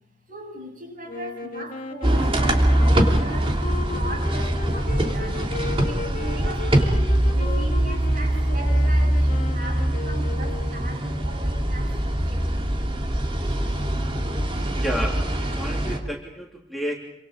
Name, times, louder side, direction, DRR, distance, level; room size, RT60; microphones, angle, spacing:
voice 1, 0.3-3.6 3.9-5.5 5.8-12.9, right 2 dB, 50° right, 2 dB, 7.8 m, -39 dB
sound 1, 1.1-11.1, left 3 dB, 50° left, 2.4 m, -37 dB
sound 2, 2.0-16.0, right 1 dB, 30° right, 3.2 m, -23 dB
voice 2, 14.7-17.0, equal, ahead, -1 dB, 3.2 m, -31 dB
28.0 x 26.0 x 5.2 m, 0.88 s
head